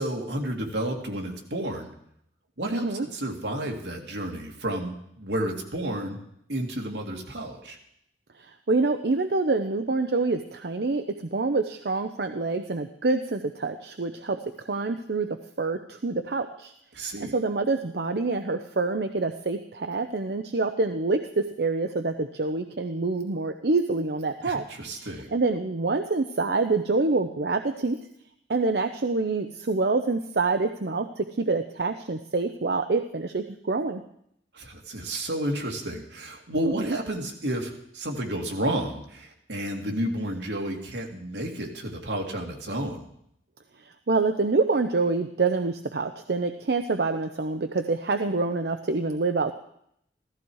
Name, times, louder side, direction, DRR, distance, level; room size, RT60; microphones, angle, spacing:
voice 1, 0.0-1.9 2.6-6.2 6.5-7.8 16.9-17.3 24.4-25.3 34.5-43.0, right 1 dB, 85° right, 2 dB, 2.4 m, -31 dB
voice 2, 2.7-3.1 8.4-16.7 17.3-24.6 24.9-28.0 28.5-34.0 36.8-37.0 43.8-49.5, right 3 dB, 70° right, 7 dB, 0.7 m, -26 dB
15.5 x 14.5 x 4.7 m, 0.73 s
head